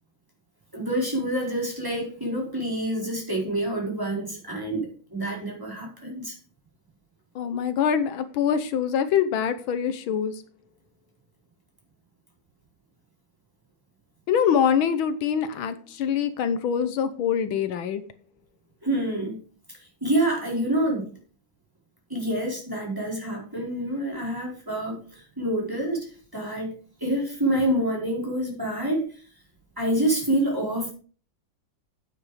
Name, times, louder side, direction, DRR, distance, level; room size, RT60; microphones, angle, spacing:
voice 1, 0.7-6.4 18.8-19.4 20.0-21.1 22.1-26.7 27.0-29.1 29.8-30.9, right 1 dB, 10° right, -2 dB, 4.6 m, -27 dB
voice 2, 7.4-10.4 14.3-18.0, left 8 dB, 80° left, 11 dB, 1.7 m, -24 dB
9.1 x 8.9 x 5.1 m, 0.39 s
omnidirectional pair, 2.2 m